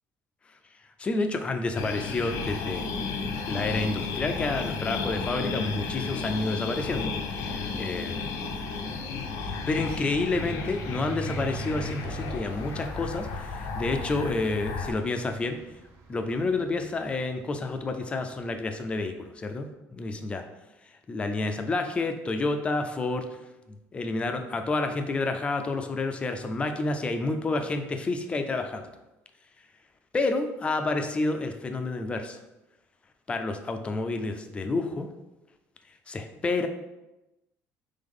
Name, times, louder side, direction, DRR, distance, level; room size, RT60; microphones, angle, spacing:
voice 1, 1.0-3.0 3.5-8.3 9.4-15.6 16.1-20.4 21.1-23.2 23.7-28.8 30.1-32.4 33.3-35.1 36.1-36.7, left 3 dB, 20° left, 6 dB, 0.4 m, -29 dB
sound 1, 1.7-14.9, left 4 dB, 80° left, 0.5 m, -33 dB
sound 2, 7.2-19.0, right 6 dB, 55° right, 0.7 m, -45 dB
3.7 x 3.3 x 3.5 m, 0.98 s
cardioid pair, 150°, 6 cm